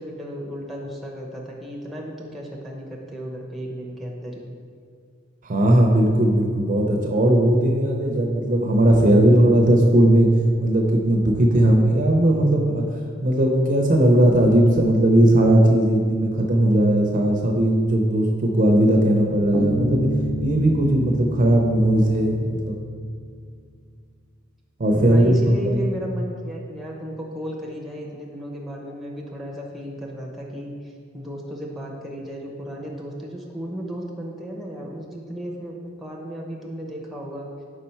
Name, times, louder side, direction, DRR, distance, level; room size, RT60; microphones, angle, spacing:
voice 1, 0.0-4.5 25.1-30.7 31.1-37.5, equal, ahead, -2 dB, 0.8 m, -34 dB
voice 2, 5.4-10.3 10.6-12.9 13.2-20.1 20.4-22.8 24.8-25.9, right 1 dB, 45° right, 1 dB, 0.6 m, -18 dB
Bass guitar, 19.5-23.0, equal, 25° left, 0.5 m, -29 dB
5.4 x 4.9 x 4.4 m, 2.1 s
head